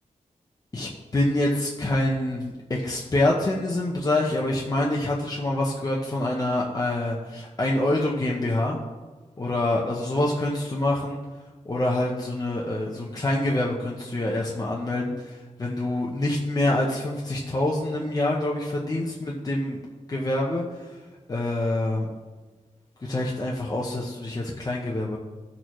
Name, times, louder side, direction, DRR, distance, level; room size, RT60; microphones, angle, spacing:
voice 1, 0.7-8.8 9.4-11.2 11.7-19.8 20.1-20.6 21.3-22.1 23.0-25.2, left 1 dB, 25° left, -3 dB, 0.9 m, -26 dB
16.0 x 6.5 x 3.1 m, 1.3 s
wide cardioid pair, 175°, 14 cm